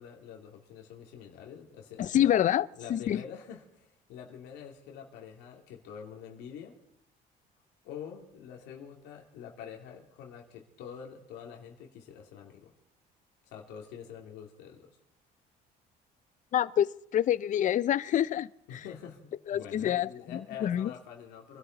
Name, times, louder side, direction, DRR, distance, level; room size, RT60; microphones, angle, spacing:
voice 1, 0.0-2.5 2.8-6.7 7.8-12.7 13.5-14.9 18.7-21.6, left 8 dB, 90° left, 2 dB, 2.5 m, -46 dB
voice 2, 2.0-3.2 16.5-18.8 19.5-20.9, left 11 dB, 50° left, 19 dB, 0.5 m, -27 dB
25.5 x 12.5 x 4.0 m, 0.74 s
cardioid pair, 110°, 17 cm